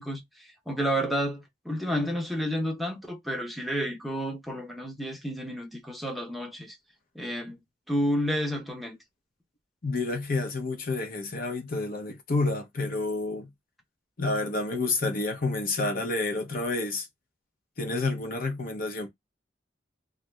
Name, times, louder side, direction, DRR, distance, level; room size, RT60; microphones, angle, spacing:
voice 1, 0.0-6.8 7.1-7.6 7.9-9.0, equal, ahead, 0.6 m, -30 dB
voice 2, 9.8-13.5 14.2-17.1 17.8-19.1, left 3 dB, 50° left, 0.7 m, -29 dB
2.6 x 2.5 x 3.1 m
head